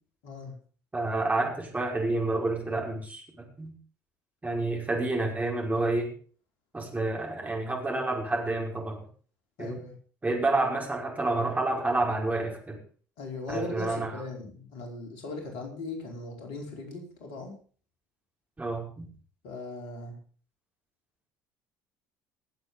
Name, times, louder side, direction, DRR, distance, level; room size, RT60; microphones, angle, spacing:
voice 1, 0.2-0.5 9.6-9.9 13.2-17.5 19.4-20.2, left 2 dB, 65° left, 2 dB, 4.8 m, -38 dB
voice 2, 0.9-3.7 4.4-6.1 6.7-9.0 9.6-9.8 10.2-12.8 13.5-14.2 18.6-19.1, right 2 dB, 15° right, 0 dB, 5.6 m, -29 dB
18.5 x 8.0 x 5.5 m, 0.43 s
hypercardioid pair, 60°, 9 cm